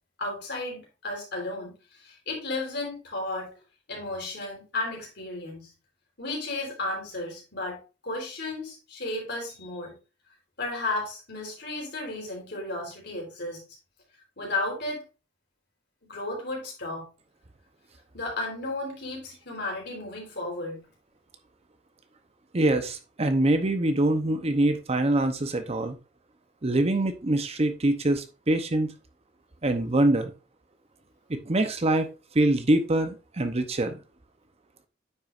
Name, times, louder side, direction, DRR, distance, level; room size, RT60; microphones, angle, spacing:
voice 1, 0.2-3.5 3.9-5.7 6.2-10.0 10.6-13.6 14.4-15.1 16.1-17.1 18.1-20.9, left 2 dB, 60° left, 0 dB, 3.8 m, -34 dB
voice 2, 22.5-26.0 26.6-28.9 29.6-30.3 31.3-34.0, right 1 dB, 35° right, 8 dB, 0.8 m, -24 dB
9.3 x 6.1 x 2.5 m, 0.30 s
head